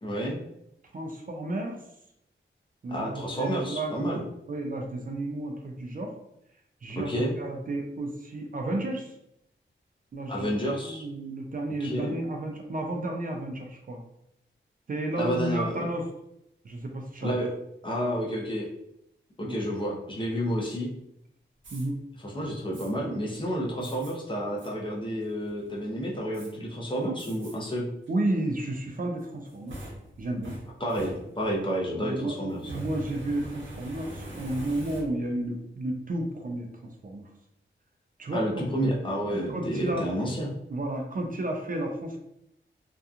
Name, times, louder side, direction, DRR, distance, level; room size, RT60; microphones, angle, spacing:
voice 1, 0.0-0.4 2.9-4.2 7.0-7.3 10.3-11.0 11.8-12.2 15.2-15.9 17.2-17.5 17.8-18.7 19.4-20.9 22.3-27.9 30.8-32.6 38.3-40.5, equal, 25° left, -3 dB, 0.6 m, -30 dB
voice 2, 0.9-1.8 2.8-6.2 6.8-9.1 10.1-14.0 14.9-16.1 16.6-17.4 19.4-19.6 21.7-22.0 28.1-29.8 30.2-30.6 32.0-37.3 38.2-38.5 39.3-40.1 40.7-42.2, right 1 dB, 45° right, 2 dB, 0.4 m, -32 dB
Fire, 21.6-21.9 22.7-22.9 23.8-24.1 24.6-24.7 25.2-25.7 26.3-26.5 27.2-27.5 28.0-28.1 29.2-31.7 32.5-35.4, right 1 dB, 70° right, 0.8 m, -42 dB
2.7 x 2.3 x 2.4 m, 0.78 s
wide cardioid pair, 130°, 20 cm